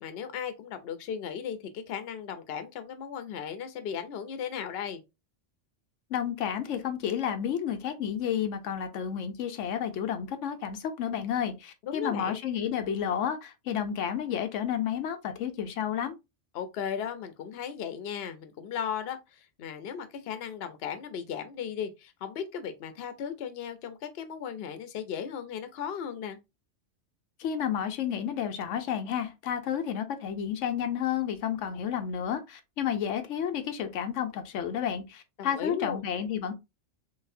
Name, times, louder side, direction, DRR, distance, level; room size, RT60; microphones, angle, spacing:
voice 1, 0.0-5.0 11.8-12.4 16.5-26.4 35.4-36.0, left 8 dB, 60° left, 0.9 m, -36 dB
voice 2, 6.1-16.1 27.4-36.5, left 9 dB, 90° left, 1.0 m, -31 dB
3.9 x 3.2 x 2.7 m
omnidirectional pair, 1.2 m